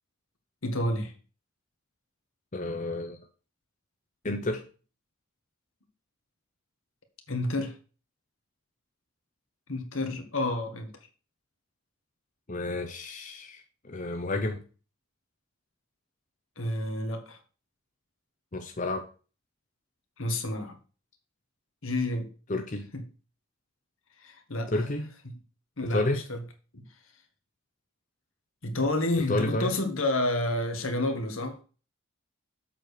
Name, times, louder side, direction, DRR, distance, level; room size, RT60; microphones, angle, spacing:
voice 1, 0.6-1.1 7.3-7.8 9.7-10.9 16.6-17.4 20.2-20.8 21.8-22.3 22.9-23.0 24.2-24.9 25.2-25.3 25.8-26.4 26.7-26.8 28.6-31.6, left 1 dB, 70° left, 1.8 m, -30 dB
voice 2, 2.5-3.2 4.2-4.6 12.5-14.6 18.5-19.1 22.5-22.9 24.7-25.1 25.9-26.2 29.3-29.7, left 2 dB, 35° left, 0.8 m, -30 dB
7.7 x 4.7 x 6.6 m
head